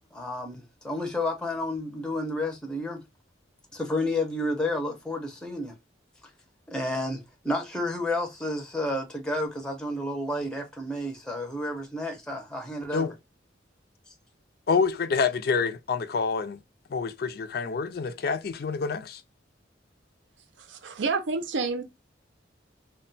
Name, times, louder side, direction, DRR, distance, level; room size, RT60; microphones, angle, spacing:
voice 1, 0.1-3.0 3.7-5.7 6.7-13.1 14.1-14.2, left 1 dB, 5° left, 0.5 m, -31 dB
voice 2, 14.7-16.6 16.9-19.2, left 5 dB, 55° left, 0.4 m, -27 dB
voice 3, 20.6-21.8, right 4 dB, 85° right, 0.5 m, -29 dB
2.2 x 2.1 x 3.8 m
head